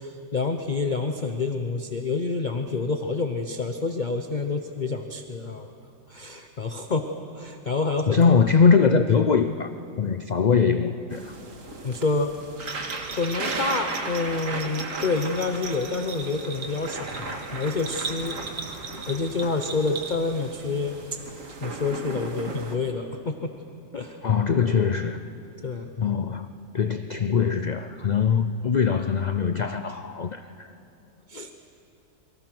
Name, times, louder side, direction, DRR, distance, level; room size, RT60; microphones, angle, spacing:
voice 1, 0.0-5.7 6.1-7.1 7.3-8.4 11.8-12.7 13.1-18.4 19.1-21.0 21.6-23.5 23.9-24.2 25.6-25.9 31.3-31.5, left 3 dB, 35° left, 5 dB, 0.9 m, -28 dB
voice 2, 8.1-9.7 10.0-11.3 24.2-25.2 26.0-30.7, left 6 dB, 55° left, 9 dB, 0.4 m, -22 dB
sound 1, 11.1-22.8, right 3 dB, 55° right, 2.3 m, -36 dB
Bell, 12.6-20.5, right 4 dB, 85° right, 2.2 m, -39 dB
28.5 x 23.5 x 6.1 m, 2.8 s
omnidirectional pair, 1.6 m